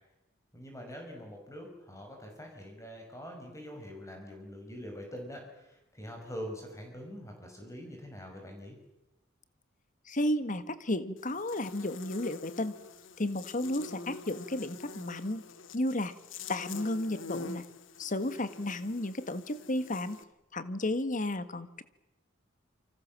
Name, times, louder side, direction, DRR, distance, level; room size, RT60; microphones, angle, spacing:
voice 1, 0.5-8.8, equal, 15° left, 2 dB, 5.8 m, -44 dB
voice 2, 10.1-12.8 13.2-15.4 15.7-16.1 16.5-17.6 18.0-20.2 20.5-21.8, left 1 dB, 40° left, 12 dB, 1.7 m, -33 dB
Buzz, 11.2-20.2, left 4 dB, 75° left, 2.0 m, -46 dB
28.5 x 25.5 x 7.6 m, 0.93 s
head